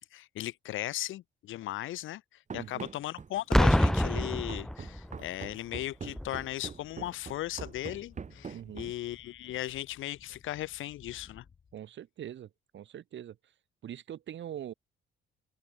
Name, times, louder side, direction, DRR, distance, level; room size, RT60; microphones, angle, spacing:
voice 1, 0.1-11.4, left 14 dB, 80° left, 1.3 m, -37 dB
Run, 2.5-9.1, right 6 dB, 35° right, 2.0 m, -44 dB
voice 2, 2.5-2.8 8.5-8.9 11.7-13.4 13.8-14.7, right 10 dB, 70° right, 6.1 m, -43 dB
Boom, 3.5-5.3 6.2-6.4, left 1 dB, ahead, 0.4 m, -25 dB
Speech / Wind, 6.9-11.8, left 6 dB, 45° left, 6.8 m, -58 dB
open air
cardioid pair, 90°, 20 cm